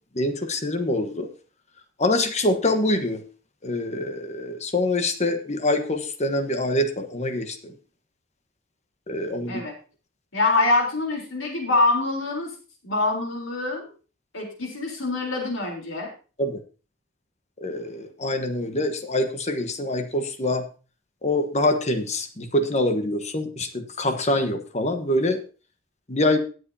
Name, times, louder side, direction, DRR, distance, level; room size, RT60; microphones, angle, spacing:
voice 1, 0.1-1.3 2.0-3.2 3.6-7.7 9.1-9.6 16.4-16.6 17.6-20.7 21.2-25.4 26.1-26.4, left 1 dB, 35° left, 7 dB, 1.2 m, -25 dB
voice 2, 10.3-12.5 12.8-13.9 14.3-16.1, left 2 dB, 85° left, 1 dB, 3.8 m, -24 dB
18.5 x 7.8 x 2.8 m, 0.35 s
head